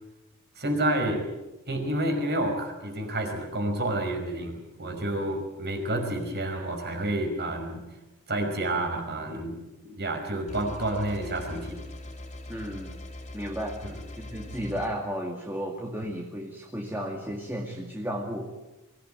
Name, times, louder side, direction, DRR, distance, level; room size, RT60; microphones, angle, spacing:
voice 1, 0.6-1.3 1.7-7.8 8.3-9.6 9.8-11.8 13.8-14.0, right 1 dB, 50° right, 4 dB, 5.3 m, -29 dB
sound 1, 10.5-14.9, left 1 dB, 30° left, 3.6 m, -41 dB
voice 2, 12.5-12.9 13.3-13.8 14.1-18.5, equal, 10° right, 0 dB, 2.3 m, -33 dB
23.5 x 17.0 x 8.9 m, 1.0 s
head